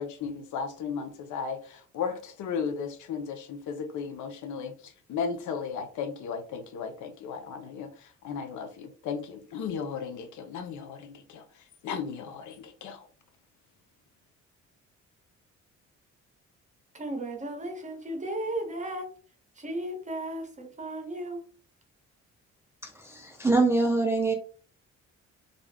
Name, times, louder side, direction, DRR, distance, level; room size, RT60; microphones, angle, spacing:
voice 1, 0.0-13.1, left 6 dB, 75° left, 0.6 m, -35 dB
voice 2, 16.9-19.1 19.6-21.4, right 1 dB, 25° right, 0.9 m, -35 dB
voice 3, 22.8-24.3, right 3 dB, 10° right, 0.4 m, -24 dB
2.5 x 2.2 x 3.3 m
cardioid pair, 90°, 30 cm